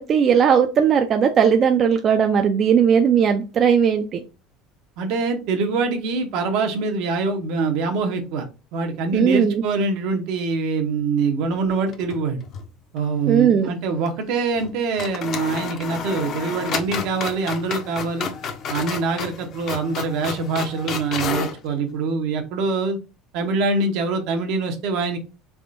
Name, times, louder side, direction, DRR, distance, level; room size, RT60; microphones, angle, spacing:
voice 1, 0.0-4.2 9.1-9.6 13.3-13.7, right 7 dB, 35° right, 5 dB, 0.4 m, -17 dB
voice 2, 5.0-12.4 12.9-18.3 18.7-23.0 23.3-25.2, right 4 dB, 65° right, 5 dB, 0.8 m, -24 dB
sound 1, 11.9-12.7 13.0-13.1 14.6-14.7 15.0-21.6, left 6 dB, 40° left, 0.6 m, -31 dB
3.5 x 3.3 x 2.6 m, 0.31 s
cardioid pair, 135°, 0 cm